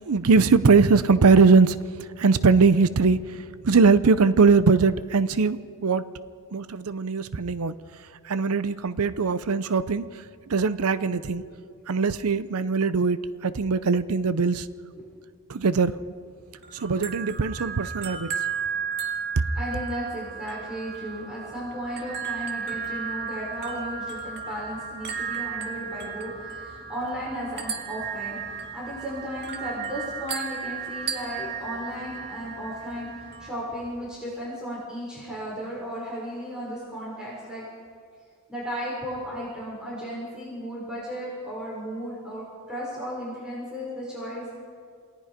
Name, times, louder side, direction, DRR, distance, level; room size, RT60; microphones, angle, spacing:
voice 1, 0.1-6.1 6.5-7.7 8.2-10.1 10.5-11.4 11.9-14.7 15.5-16.0 16.7-18.3, right 4 dB, 70° right, 15 dB, 0.6 m, -21 dB
voice 2, 11.1-11.5 14.9-15.1 19.5-37.6 38.5-44.6, equal, 5° right, -7 dB, 6.1 m, -35 dB
sound 1, 16.6-33.5, right 6 dB, 45° right, 2.2 m, -34 dB
28.0 x 18.5 x 5.1 m, 2.2 s
head